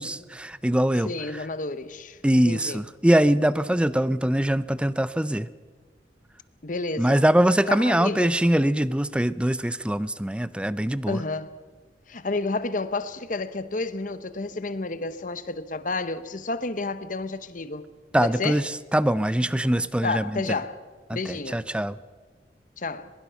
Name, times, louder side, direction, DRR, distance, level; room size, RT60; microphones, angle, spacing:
voice 1, 0.0-1.1 2.2-5.5 7.0-11.2 18.1-20.4 21.1-22.0, right 1 dB, 5° right, 0.5 m, -23 dB
voice 2, 1.1-2.2 2.4-2.8 6.6-7.2 7.7-8.4 11.1-11.5 12.1-17.9 18.2-18.6 20.0-20.8 21.1-21.6 22.8-23.1, left 3 dB, 45° left, 1.0 m, -30 dB
23.5 x 21.5 x 5.7 m
head